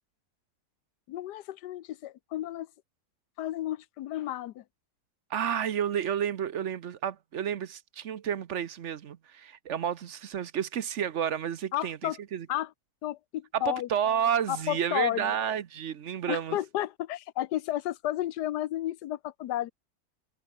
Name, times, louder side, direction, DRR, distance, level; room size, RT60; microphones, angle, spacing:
voice 1, 1.1-2.7 3.4-4.6 11.7-12.2 12.5-12.7 13.0-13.9 14.5-15.3 16.3-19.7, left 13 dB, 90° left, 1.3 m, -32 dB
voice 2, 5.3-12.5 13.5-16.6, right 9 dB, 55° right, 1.0 m, -31 dB
omnidirectional pair, 1.7 m